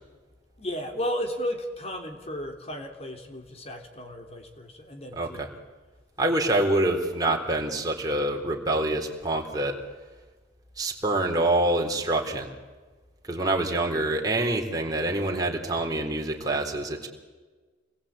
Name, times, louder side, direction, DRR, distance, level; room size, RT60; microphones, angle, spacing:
voice 1, 0.6-5.5, equal, 35° left, 4 dB, 3.4 m, -34 dB
voice 2, 5.1-5.5 6.2-9.8 10.8-12.5 13.2-17.1, right 2 dB, 20° right, 1 dB, 3.8 m, -26 dB
28.0 x 21.0 x 8.8 m, 1.3 s
head